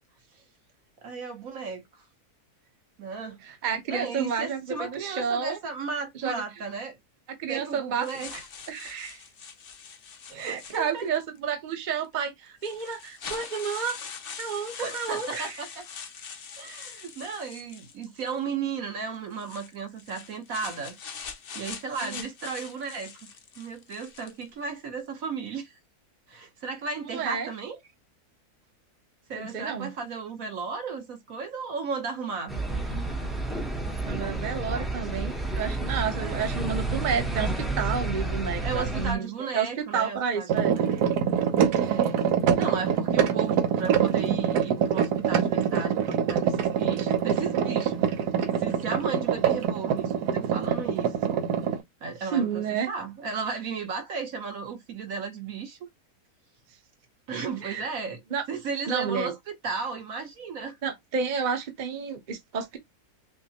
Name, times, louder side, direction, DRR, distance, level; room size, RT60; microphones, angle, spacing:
voice 1, 1.0-1.8 3.0-3.4 3.9-7.0 7.4-8.5 10.4-11.1 14.8-15.8 16.6-21.0 21.5-23.1 23.6-25.7 26.3-27.8 29.3-32.5 36.2-36.5 38.6-41.0 41.9-42.2 42.6-48.0 48.6-51.4 52.0-55.8 57.3-58.2 58.5-60.8, right 5 dB, 60° right, 1.4 m, -35 dB
voice 2, 3.4-5.6 6.2-6.4 7.4-8.1 8.7-9.2 10.3-14.0 14.4-15.6 22.0-22.3 27.1-27.5 29.3-29.9 34.0-39.3 39.5-40.8 52.2-52.9 57.6-57.9 58.3-58.4 58.9-59.3 60.8-62.8, right 6 dB, 40° right, 0.8 m, -30 dB
sound 1, 8.0-11.2 12.0-12.1 12.6-18.4 19.3-24.5, left 6 dB, 50° left, 0.7 m, -43 dB
sound 2, 32.5-39.1, right 2 dB, ahead, 0.5 m, -30 dB
sound 3, 40.5-51.8, right 8 dB, 80° right, 1.3 m, -25 dB
5.8 x 2.1 x 2.8 m
omnidirectional pair, 1.7 m